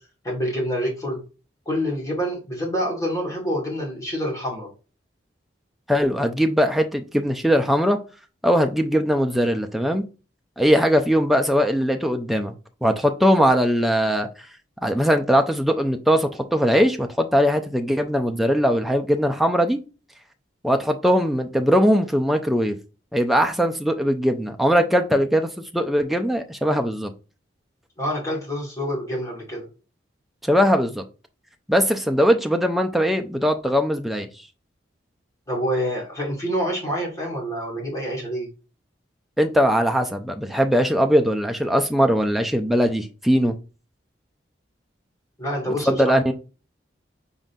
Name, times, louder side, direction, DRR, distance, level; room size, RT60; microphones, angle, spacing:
voice 1, 0.2-1.2 1.7-4.7 28.0-29.7 35.5-38.5 45.4-46.2, equal, 15° left, -3 dB, 1.8 m, -27 dB
voice 2, 5.9-8.0 8.4-10.0 10.6-12.5 12.8-14.3 14.8-19.8 20.6-22.8 23.1-27.1 30.4-31.0 31.7-34.3 39.4-43.5 45.9-46.3, equal, ahead, 4 dB, 0.4 m, -20 dB
5.2 x 3.7 x 2.6 m, 0.33 s
head